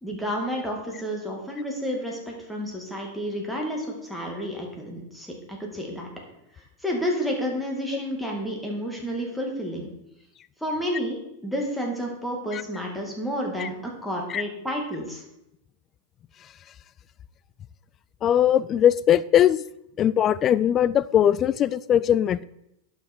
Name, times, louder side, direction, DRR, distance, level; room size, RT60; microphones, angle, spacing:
voice 1, 0.0-6.1 6.8-9.9 10.6-15.2, equal, 5° left, -1 dB, 2.4 m, -30 dB
voice 2, 18.2-19.6 20.0-22.4, left 10 dB, 35° left, 18 dB, 0.3 m, -20 dB
11.5 x 5.8 x 4.7 m, 0.83 s
hypercardioid pair, 100°, 0 cm